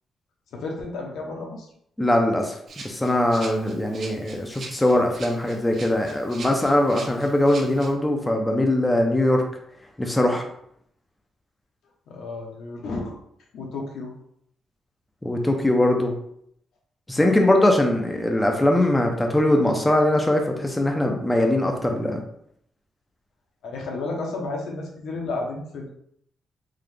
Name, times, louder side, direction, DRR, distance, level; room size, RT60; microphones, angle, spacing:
voice 1, 0.5-1.7 12.1-13.2 13.5-14.1 23.6-25.9, left 3 dB, 80° left, 0 dB, 0.9 m, -32 dB
voice 2, 2.0-2.6 2.8-9.4 10.0-10.4 15.2-16.1 17.1-22.2, left 1 dB, 10° left, 2 dB, 0.5 m, -21 dB
Rattle (instrument), 2.7-7.9, right 3 dB, 45° right, 0.7 m, -42 dB
3.8 x 2.7 x 3.3 m, 0.71 s
cardioid pair, 150°, 0 cm